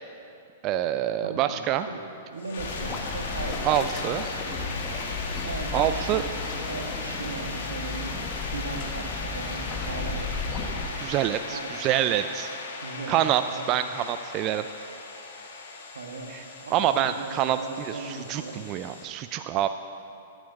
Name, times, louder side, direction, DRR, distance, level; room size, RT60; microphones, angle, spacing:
voice 1, 0.6-1.9 3.6-4.2 5.7-6.2 11.0-12.5 13.1-13.4 13.7-14.6 16.3-16.4 16.7-19.7, right 11 dB, 35° right, 10 dB, 0.3 m, -26 dB
voice 2, 1.2-3.9 5.4-6.3 6.6-8.2 8.5-10.6 11.5-12.1 12.8-13.2 13.5-13.7 15.9-16.3 16.6-18.6, right 3 dB, 80° right, 4 dB, 1.3 m, -38 dB
sound 1, 2.4-19.0, left 3 dB, 65° left, 1.8 m, -38 dB
sound 2, 2.6-10.9, left 3 dB, 30° left, 1.6 m, -34 dB
13.0 x 9.0 x 5.4 m, 2.7 s
hypercardioid pair, 115°, 0 cm